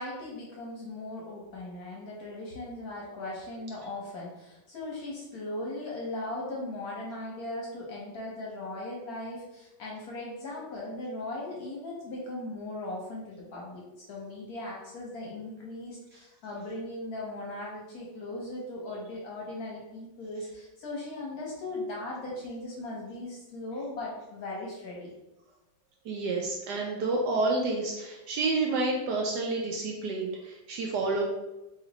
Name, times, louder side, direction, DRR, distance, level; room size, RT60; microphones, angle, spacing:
voice 1, 0.0-13.8 14.1-25.1, left 2 dB, 60° left, -3 dB, 1.1 m, -38 dB
voice 2, 26.1-31.2, right 3 dB, 70° right, 0 dB, 1.0 m, -29 dB
3.1 x 2.9 x 3.9 m, 0.98 s
omnidirectional pair, 2.1 m